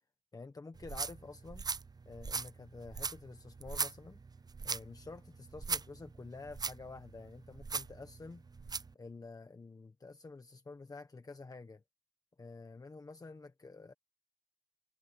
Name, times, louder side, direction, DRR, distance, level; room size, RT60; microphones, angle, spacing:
voice 1, 0.3-1.7 2.0-4.2 4.6-8.4 8.9-11.8 12.4-13.9, left 3 dB, 60° left, 1.2 m, -49 dB
sound 1, 0.7-8.9, right 4 dB, 65° right, 0.6 m, -40 dB
wide cardioid pair, 80°, 7 cm